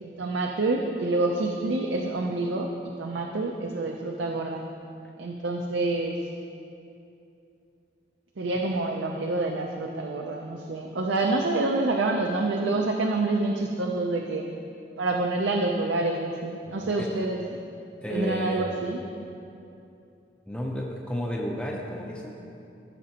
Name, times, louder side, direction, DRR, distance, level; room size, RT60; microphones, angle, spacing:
voice 1, 0.0-2.7 3.0-4.6 5.2-6.2 8.4-14.5 15.0-17.4 18.1-19.0, right 2 dB, 90° right, 1 dB, 0.6 m, -27 dB
voice 2, 16.7-17.1 18.0-18.9 20.5-22.3, equal, 5° left, -1 dB, 0.6 m, -32 dB
15.0 x 6.1 x 2.9 m, 2.7 s
head